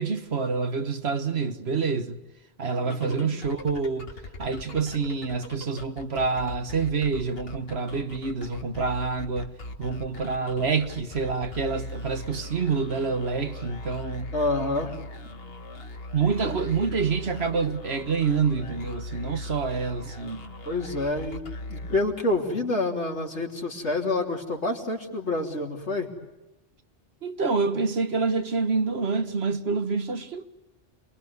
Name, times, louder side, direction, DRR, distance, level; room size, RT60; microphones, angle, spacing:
voice 1, 0.0-2.2 2.6-4.1 4.4-9.5 9.8-14.3 16.1-20.4 27.2-30.4, right 5 dB, 65° right, 1.6 m, -27 dB
voice 2, 2.8-3.3 14.3-14.9 16.4-16.5 20.6-26.1, left 2 dB, 80° left, 3.4 m, -28 dB
sound 1, 2.9-22.5, left 1 dB, 55° left, 1.8 m, -40 dB
28.0 x 22.0 x 9.5 m
omnidirectional pair, 1.2 m